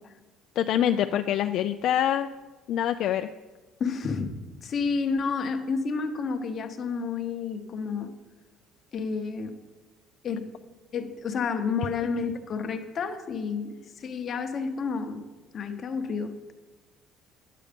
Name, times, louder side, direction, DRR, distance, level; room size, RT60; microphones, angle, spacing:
voice 1, 0.6-2.3 2.7-3.3, left 10 dB, 55° left, 8 dB, 0.3 m, -25 dB
voice 2, 3.8-4.3 4.6-8.1 8.9-9.6 10.2-10.5 10.9-13.7 14.0-15.2 15.5-16.5, left 5 dB, 35° left, 7 dB, 0.8 m, -30 dB
9.8 x 8.4 x 5.1 m, 1.2 s
cardioid pair, 165°, 0 cm